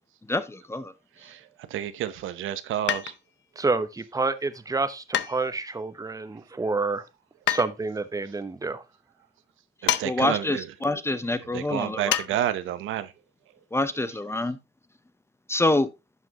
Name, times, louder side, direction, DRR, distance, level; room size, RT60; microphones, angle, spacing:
voice 1, 0.3-0.9 10.0-12.2 13.7-14.6 15.5-15.9, left 2 dB, 15° left, 0.7 m, -26 dB
voice 2, 1.2-3.1 9.8-10.7 11.5-13.1, right 11 dB, 80° right, 0.9 m, -30 dB
sound 1, 2.9-3.4 5.1-5.8 7.5-7.7 9.9-10.1 10.4-10.5 12.1-12.3 12.7-12.8, left 11 dB, 65° left, 0.7 m, -27 dB
voice 3, 3.6-7.0 7.5-8.8, right 3 dB, 15° right, 0.9 m, -28 dB
11.0 x 5.9 x 2.9 m
cardioid pair, 90°, 20 cm